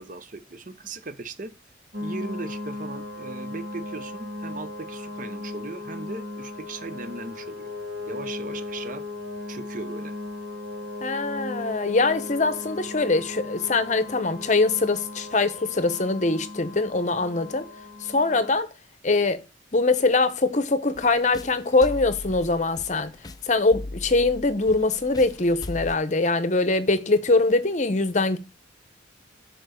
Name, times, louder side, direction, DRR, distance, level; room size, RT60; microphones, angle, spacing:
voice 1, 0.0-1.5 2.0-7.7 8.1-9.0 9.5-10.2, right 3 dB, 45° right, 0.7 m, -38 dB
sound 1, 1.9-18.6, left 2 dB, 65° right, 2.3 m, -37 dB
voice 2, 11.0-17.7 18.0-18.7 19.0-19.4 19.7-23.1 23.4-28.4, left 3 dB, 40° left, 0.8 m, -23 dB
sound 2, 20.9-26.0, left 2 dB, 20° left, 0.4 m, -39 dB
7.1 x 4.5 x 6.4 m
head